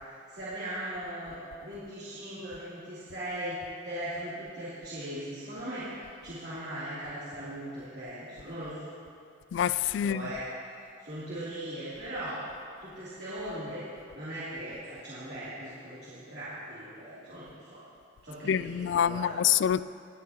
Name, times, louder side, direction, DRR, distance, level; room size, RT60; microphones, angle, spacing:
voice 1, 0.3-3.6 3.8-5.9 6.2-8.8 10.0-10.5 11.0-12.5 12.8-13.8 14.1-17.8 18.2-19.5, right 1 dB, 60° right, 3.4 m, -39 dB
voice 2, 9.5-10.3 18.4-19.8, left 9 dB, 75° left, 0.3 m, -26 dB
22.5 x 9.4 x 3.1 m
head